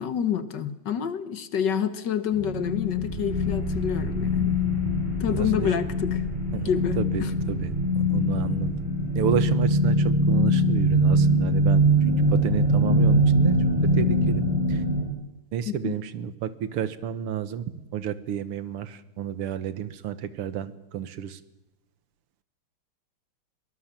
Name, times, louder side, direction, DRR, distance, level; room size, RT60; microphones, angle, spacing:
voice 1, 0.0-4.6 5.2-6.2 6.6-7.3 15.7-16.0, left 8 dB, 60° left, 11 dB, 1.7 m, -28 dB
sound 1, 2.3-15.0, equal, 20° right, 6.5 m, -23 dB
voice 2, 5.3-5.7 6.5-6.7 7.0-8.8 9.2-11.9 12.2-13.6 13.9-14.4 14.7-14.8 15.5-17.7 17.9-21.4, right 9 dB, 85° right, 13 dB, 2.0 m, -31 dB
23.0 x 19.5 x 7.4 m, 0.96 s
omnidirectional pair, 2.4 m